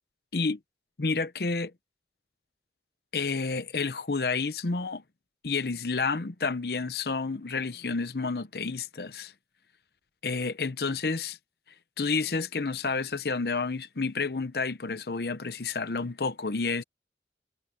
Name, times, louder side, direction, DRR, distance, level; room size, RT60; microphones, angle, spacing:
voice 1, 1.0-1.7 3.1-5.0 5.4-9.3 10.2-11.4 12.0-16.8, left 4 dB, 60° left, 0.8 m, -30 dB
head